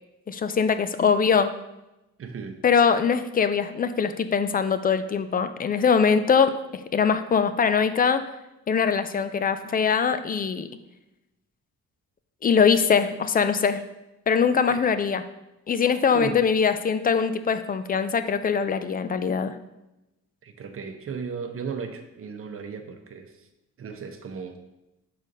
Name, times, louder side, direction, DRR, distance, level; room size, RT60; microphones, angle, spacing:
voice 1, 0.3-1.5 2.6-6.5 6.9-8.2 8.7-10.7 12.4-13.8 14.3-15.2 15.7-19.6, left 6 dB, 30° left, 10 dB, 0.4 m, -22 dB
voice 2, 2.2-2.6 14.7-14.8 16.1-16.5 20.4-23.5 23.8-24.6, right 6 dB, 45° right, 5 dB, 0.9 m, -36 dB
6.3 x 3.9 x 5.2 m, 0.94 s
cardioid pair, 135°, 30 cm